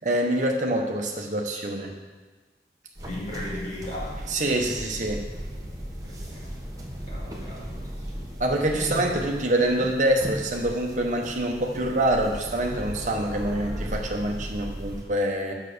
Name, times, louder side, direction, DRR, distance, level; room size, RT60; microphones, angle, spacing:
voice 1, 0.0-1.9 4.3-5.2 8.4-15.5, right 1 dB, 45° right, 1 dB, 1.1 m, -25 dB
sound 1, 2.9-15.0, equal, 20° right, 1.3 m, -36 dB
voice 2, 3.1-4.3 6.0-6.5 7.1-8.1 8.7-9.1, left 1 dB, 40° left, -6 dB, 2.4 m, -37 dB
6.6 x 6.2 x 6.8 m, 1.3 s
head